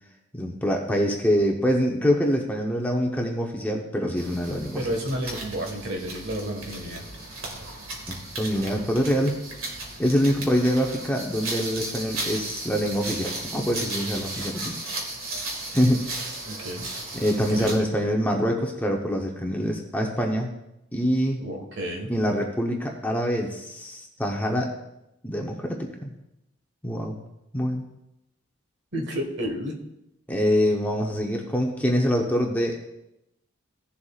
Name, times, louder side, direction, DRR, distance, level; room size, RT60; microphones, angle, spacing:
voice 1, 0.3-4.9 8.1-9.3 10.0-14.8 15.7-16.0 17.1-20.5 20.9-21.4 22.1-24.7 25.2-26.1 26.8-27.2 27.5-27.9 30.3-32.9, equal, 10° left, 1 dB, 0.8 m, -25 dB
sound 1, 4.2-17.9, right 2 dB, 80° right, 2.0 m, -35 dB
voice 2, 4.8-7.0 16.4-16.9 17.5-17.9 21.4-22.1 28.9-29.8, equal, 55° right, 3 dB, 1.6 m, -31 dB
16.5 x 7.0 x 2.4 m, 0.88 s
head